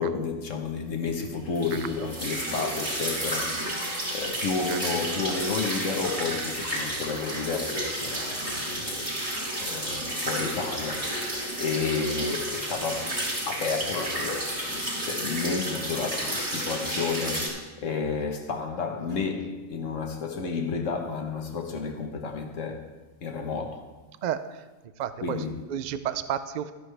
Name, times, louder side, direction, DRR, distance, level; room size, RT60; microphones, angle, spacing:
voice 1, 0.0-9.1 9.6-13.2 13.5-22.8 23.2-23.8 25.2-25.6, left 4 dB, 70° left, 1.5 m, -31 dB
sound 1, 1.6-17.5, right 1 dB, 35° right, 4.4 m, -31 dB
voice 2, 24.2-24.6 25.0-26.7, right 9 dB, 60° right, 0.4 m, -32 dB
13.5 x 10.0 x 3.3 m
omnidirectional pair, 1.4 m